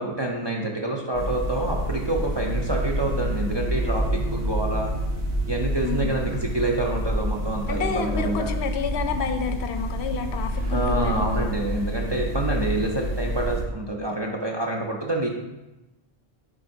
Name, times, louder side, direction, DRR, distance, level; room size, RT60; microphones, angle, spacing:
voice 1, 0.0-4.9 5.5-8.5 10.7-15.3, right 2 dB, 35° right, 0 dB, 0.4 m, -27 dB
sound 1, 1.1-13.6, equal, 60° right, 2.3 m, -28 dB
sound 2, 1.4-12.8, right 2 dB, 80° right, 1.1 m, -38 dB
voice 2, 5.8-6.3 7.7-11.5, left 6 dB, 80° left, 7 dB, 0.8 m, -29 dB
10.0 x 3.7 x 2.6 m, 1.0 s
omnidirectional pair, 1.1 m